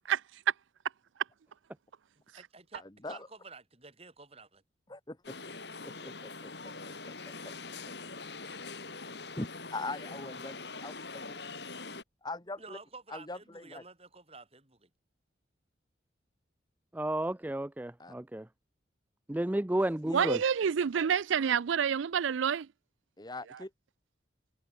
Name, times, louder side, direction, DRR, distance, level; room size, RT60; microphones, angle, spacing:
voice 1, 2.3-4.6 12.6-14.9, right 4 dB, 30° right, 5.0 m, -51 dB
voice 2, 4.9-5.3 5.8-6.7 7.4-7.5 9.4-10.6 10.8-11.4 12.2-12.8 13.1-13.8 18.0-18.1 20.0-20.3 23.2-23.7, left 2 dB, 20° left, 1.4 m, -41 dB
sound 1, 5.2-12.0, left 3 dB, 60° left, 4.8 m, -43 dB
voice 3, 16.9-18.5 19.3-20.4, right 1 dB, 10° right, 0.4 m, -32 dB
voice 4, 20.1-22.7, right 7 dB, 85° right, 0.4 m, -28 dB
head